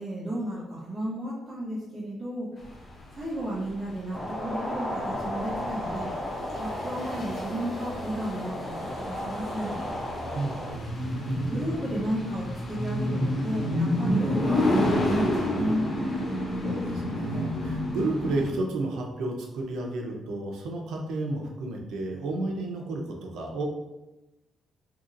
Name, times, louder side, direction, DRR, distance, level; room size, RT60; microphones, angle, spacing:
voice 1, 0.0-2.5 3.1-6.1 6.5-9.8 11.5-15.9, right 1 dB, 20° right, -9 dB, 0.6 m, -33 dB
sound 1, 2.7-18.5, left 1 dB, 35° left, 0.5 m, -30 dB
sound 2, 4.1-10.7, left 1 dB, 55° left, 1.2 m, -34 dB
voice 2, 10.3-10.9 16.6-23.6, right 2 dB, 85° right, 1 dB, 0.5 m, -32 dB
2.9 x 2.7 x 2.5 m, 1.0 s
cardioid pair, 145°, 0 cm